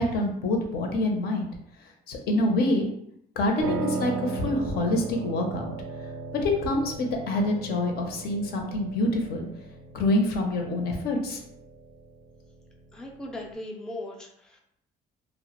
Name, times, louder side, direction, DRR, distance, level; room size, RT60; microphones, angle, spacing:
voice 1, 0.0-1.5 2.1-2.9 3.4-5.7 6.4-9.5 9.9-11.4, left 1 dB, 70° left, 2 dB, 0.5 m, -26 dB
Piano, 3.6-13.5, right 3 dB, 65° right, 0.4 m, -37 dB
voice 2, 12.9-14.6, left 1 dB, 5° left, 0 dB, 0.3 m, -38 dB
2.1 x 2.0 x 2.9 m, 0.72 s
cardioid pair, 110°, 17 cm